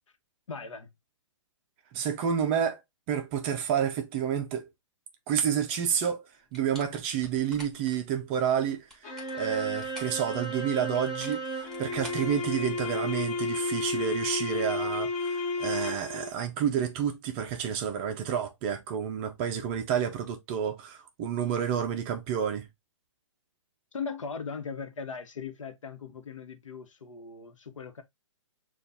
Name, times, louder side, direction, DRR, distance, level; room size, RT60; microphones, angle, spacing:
voice 1, 0.5-0.9 23.9-28.0, left 5 dB, 85° left, 1.0 m, -39 dB
voice 2, 1.9-2.8 3.1-4.6 5.3-6.2 6.5-22.7, right 8 dB, 25° right, 0.4 m, -29 dB
sound 1, 6.5-8.0 8.7-10.2 10.9-13.0, equal, 5° left, 1.3 m, -48 dB
sound 2, 9.0-16.3, left 2 dB, 30° left, 1.1 m, -32 dB
6.6 x 2.3 x 2.6 m
hypercardioid pair, 150°, 16 cm